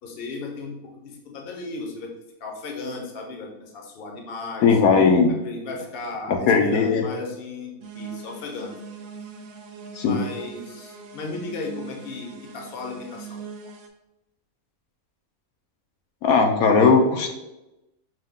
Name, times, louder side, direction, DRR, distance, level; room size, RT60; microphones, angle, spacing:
voice 1, 0.0-2.1 2.4-4.7 5.4-8.7 10.0-12.3 12.5-13.4, left 3 dB, 50° left, 1 dB, 0.8 m, -35 dB
voice 2, 4.6-5.3 6.5-7.0 10.0-10.2 16.2-17.3, left 5 dB, 75° left, 3 dB, 1.1 m, -17 dB
sound 1, 7.8-13.9, right 5 dB, 70° right, 1.0 m, -41 dB
5.4 x 2.2 x 3.6 m, 0.94 s
omnidirectional pair, 1.5 m